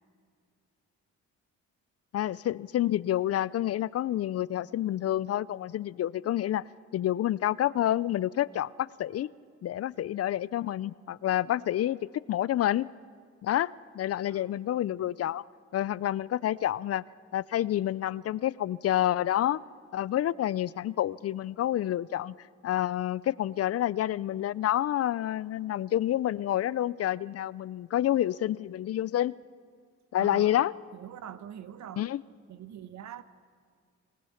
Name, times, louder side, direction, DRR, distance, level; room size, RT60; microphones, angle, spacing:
voice 1, 2.1-6.6 6.9-9.3 9.6-12.9 13.4-15.4 15.7-17.0 17.3-19.6 19.9-22.3 22.6-29.3 30.1-30.7 32.0-32.2, left 12 dB, 55° left, 21 dB, 0.5 m, -28 dB
voice 2, 14.3-14.6 30.2-30.6 30.9-32.1 32.5-33.2, right 10 dB, 65° right, 13 dB, 1.2 m, -44 dB
27.0 x 19.0 x 5.8 m, 2.1 s
cardioid pair, 90°, 30 cm